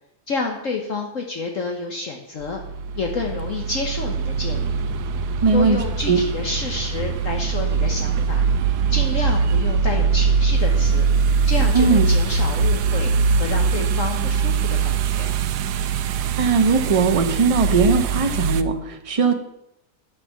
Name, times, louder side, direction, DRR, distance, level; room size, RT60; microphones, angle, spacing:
voice 1, 0.3-2.6 3.0-4.8 5.5-8.4 8.9-11.0 11.5-13.1 13.4-15.3, left 3 dB, 55° left, 2 dB, 1.4 m, -29 dB
sound 1, 2.4-18.6, right 5 dB, 85° right, 1.2 m, -22 dB
voice 2, 5.4-6.2 11.7-12.1 16.4-19.3, right 4 dB, 25° right, 5 dB, 0.9 m, -19 dB
9.5 x 6.1 x 7.1 m, 0.82 s
omnidirectional pair, 1.7 m